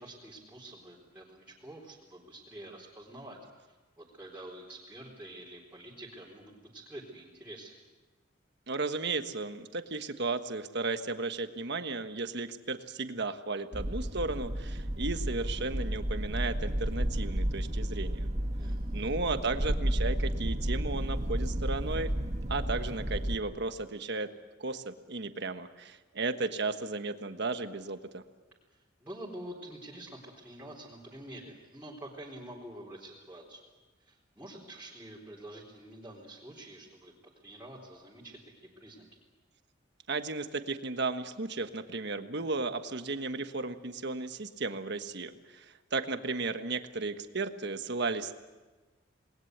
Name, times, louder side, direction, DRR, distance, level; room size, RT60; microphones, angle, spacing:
voice 1, 0.0-3.4 3.7-7.7 18.6-19.2 28.7-33.7 34.0-39.1, right 1 dB, 10° right, -7 dB, 4.1 m, -47 dB
voice 2, 8.7-18.3 18.9-22.1 22.5-24.3 24.6-28.2 40.1-48.4, right 3 dB, 60° right, 8 dB, 1.4 m, -34 dB
sound 1, 13.7-23.4, right 1 dB, 35° right, 1.5 m, -32 dB
28.0 x 20.5 x 8.0 m, 1.3 s
head